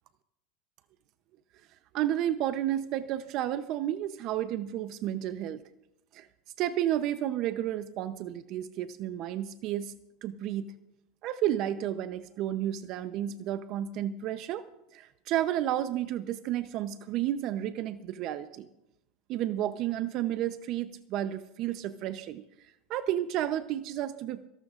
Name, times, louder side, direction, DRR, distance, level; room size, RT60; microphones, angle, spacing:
voice 1, 1.9-5.6 6.1-6.3 6.6-9.9 10.2-10.7 11.2-14.6 14.9-18.7 19.3-22.4 22.9-24.5, right 12 dB, 50° right, 11 dB, 0.7 m, -31 dB
28.0 x 12.0 x 2.5 m, 0.85 s
supercardioid pair, 125°, 0 cm